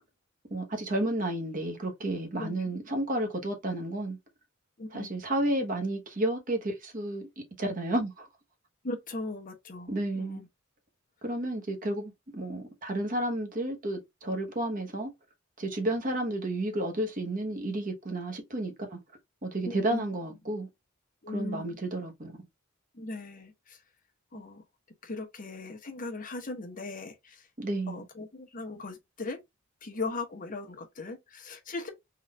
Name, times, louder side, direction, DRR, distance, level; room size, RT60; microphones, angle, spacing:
voice 1, 0.5-4.2 4.9-8.3 9.9-10.4 11.2-15.1 15.6-19.0 19.4-20.7 21.3-22.3 27.6-28.0, right 1 dB, 40° right, 1.0 m, -31 dB
voice 2, 2.4-2.7 4.8-5.1 8.8-10.5 19.7-20.0 21.2-21.8 22.9-23.8 24.3-24.6 25.0-27.4 27.9-29.4 29.8-31.9, left 3 dB, 40° left, 0.9 m, -38 dB
3.9 x 2.4 x 3.1 m
head